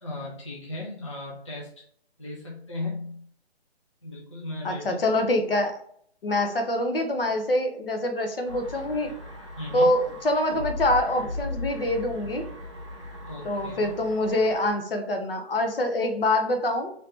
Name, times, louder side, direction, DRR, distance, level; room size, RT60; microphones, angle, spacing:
voice 1, 0.0-1.9 2.2-3.3 4.0-5.0 9.6-9.9 13.3-13.9, left 2 dB, 30° left, -4 dB, 0.5 m, -36 dB
voice 2, 4.6-5.8 6.2-9.1 9.7-12.4 13.4-16.9, left 1 dB, 60° left, 5 dB, 0.8 m, -25 dB
sound 1, 8.4-14.7, left 2 dB, 30° right, 0.6 m, -38 dB
3.2 x 2.8 x 3.0 m, 0.63 s
hypercardioid pair, 175°, 33 cm